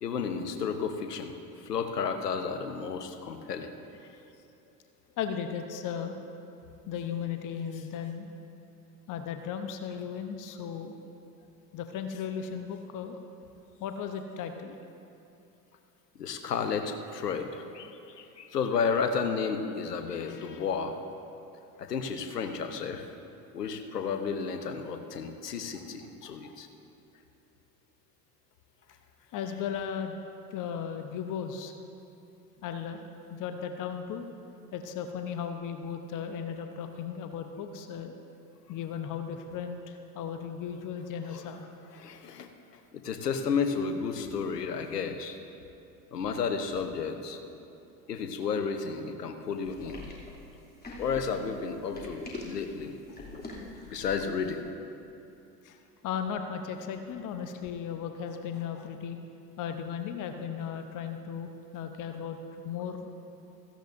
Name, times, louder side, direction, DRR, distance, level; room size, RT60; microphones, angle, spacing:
voice 1, 0.0-3.7 16.2-17.9 18.2-21.0 21.8-23.1 23.5-26.7 41.3-41.4 41.9-45.4 46.1-47.4 48.1-50.0 51.0-52.9 53.3-53.4 53.8-54.6, left 5 dB, 85° left, 7 dB, 1.0 m, -32 dB
voice 2, 5.2-6.2 6.9-8.3 9.1-11.0 11.7-13.2 13.8-14.8 20.3-20.4 25.7-25.8 26.2-26.6 29.3-30.2 30.5-31.7 32.6-34.3 34.7-38.1 38.7-41.7 55.6-59.2 59.6-63.1, left 7 dB, 40° left, 7 dB, 0.9 m, -36 dB
sound 1, 49.6-54.4, left 2 dB, 20° left, 2.9 m, -43 dB
16.5 x 15.0 x 2.6 m, 2.8 s
figure-of-eight pair, 70°, 47 cm